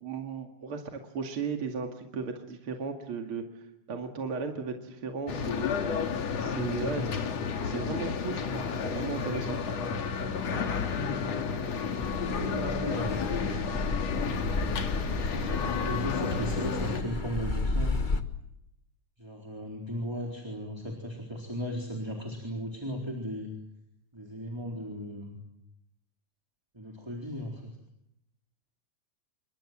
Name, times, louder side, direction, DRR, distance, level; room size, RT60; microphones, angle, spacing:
voice 1, 0.0-3.4 3.9-5.7 6.4-7.0 7.6-9.6, right 5 dB, 50° right, 3 dB, 2.9 m, -35 dB
sound 1, 5.3-17.0, left 6 dB, 65° left, 3.0 m, -31 dB
Car passing by / Accelerating revving vroom, 12.0-18.2, left 3 dB, 35° left, 0.7 m, -33 dB
voice 2, 12.2-13.7 15.1-17.9 19.2-23.5 24.1-25.4 26.7-27.7, equal, 10° right, 1 dB, 3.9 m, -36 dB
28.0 x 24.5 x 7.6 m, 0.81 s
omnidirectional pair, 3.3 m